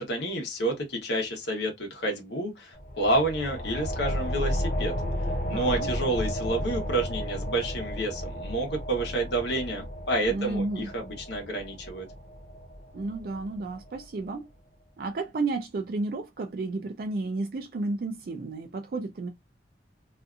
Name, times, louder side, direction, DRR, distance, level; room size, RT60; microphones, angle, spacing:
voice 1, 0.0-4.9 5.5-12.1, right 1 dB, 70° left, 1.0 m, -29 dB
sound 1, 2.7-14.0, equal, 50° left, 0.5 m, -33 dB
voice 2, 5.5-5.9 10.3-10.9 12.9-14.5 15.0-19.3, right 3 dB, 55° right, 0.4 m, -32 dB
2.7 x 2.4 x 2.3 m
head